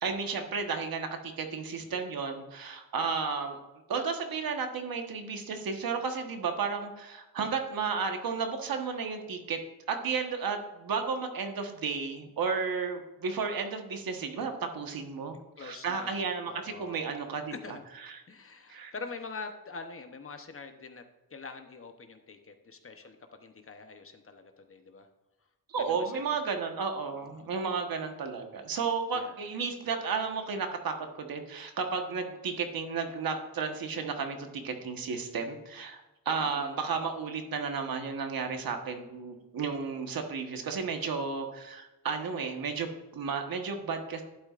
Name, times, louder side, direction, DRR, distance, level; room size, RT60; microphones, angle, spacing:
voice 1, 0.0-3.6 3.9-9.6 9.9-17.5 18.1-18.2 18.7-18.9 25.7-44.2, right 5 dB, 65° right, 5 dB, 1.4 m, -33 dB
voice 2, 15.6-17.1 17.5-17.8 18.3-21.0 21.3-25.1 25.9-26.4 27.2-27.6 29.1-29.4 36.4-37.0, left 4 dB, 35° left, 6 dB, 0.9 m, -45 dB
11.5 x 8.7 x 2.5 m, 1.1 s
wide cardioid pair, 120°, 38 cm